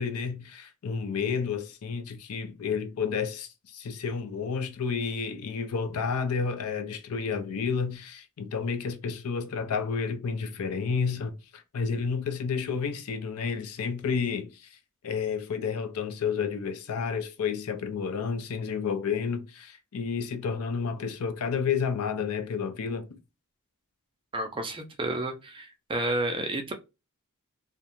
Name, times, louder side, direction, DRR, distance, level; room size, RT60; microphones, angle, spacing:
voice 1, 0.0-14.7 15.0-23.2, left 6 dB, 75° left, 0.4 m, -31 dB
voice 2, 24.3-26.7, right 2 dB, 25° right, 0.4 m, -31 dB
2.4 x 2.1 x 2.9 m
head